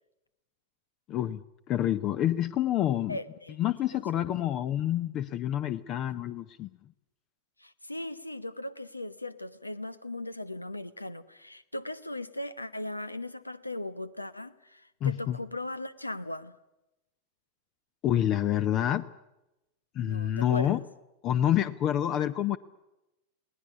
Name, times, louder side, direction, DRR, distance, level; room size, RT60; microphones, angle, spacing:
voice 1, 1.1-3.2 3.6-6.7 15.0-15.4 18.0-19.0 19.9-20.8 21.2-22.6, left 11 dB, 35° left, 14 dB, 0.7 m, -28 dB
voice 2, 3.1-3.6 3.9-4.0 7.6-16.6 20.0-20.8, left 1 dB, 85° left, 15 dB, 1.0 m, -38 dB
21.0 x 19.0 x 9.6 m, 0.93 s
figure-of-eight pair, 90°, 0 cm